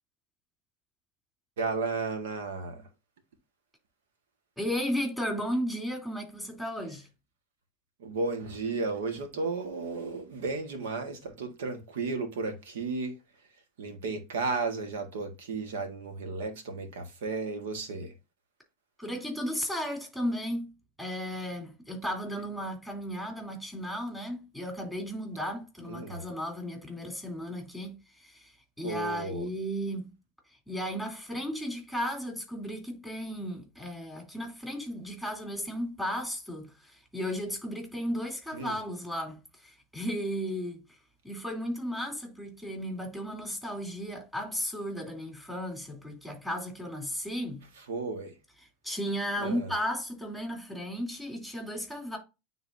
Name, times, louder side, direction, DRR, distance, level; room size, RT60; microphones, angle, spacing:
voice 1, 1.6-2.8 8.0-13.2 13.8-18.1 25.9-26.2 28.8-29.5 38.5-38.8 47.8-48.3 49.4-49.7, right 3 dB, 90° right, 1.5 m, -34 dB
voice 2, 4.6-7.1 19.0-20.7 21.0-28.5 28.8-30.1 30.7-40.8 41.2-47.6 48.8-52.2, equal, 5° right, 2.9 m, -34 dB
9.3 x 3.8 x 2.6 m
supercardioid pair, 135°, 0 cm